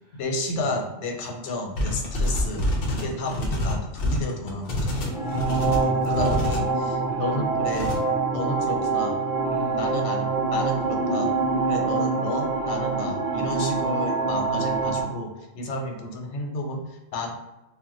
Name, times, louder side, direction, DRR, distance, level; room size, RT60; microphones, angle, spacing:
voice 1, 0.1-5.0 6.0-7.9 8.3-9.2 9.8-11.3 11.7-17.4, left 2 dB, 90° left, 2 dB, 0.9 m, -32 dB
sound 1, 1.7-6.6 7.7-8.0, left 1 dB, 60° left, 0.7 m, -27 dB
sound 2, 5.0-15.0, right 4 dB, 30° right, 0.4 m, -25 dB
voice 2, 5.2-6.1 6.9-7.5 9.4-10.0 15.9-16.0, left 1 dB, 70° right, -2 dB, 0.9 m, -40 dB
2.2 x 2.0 x 3.6 m, 1.0 s
omnidirectional pair, 1.1 m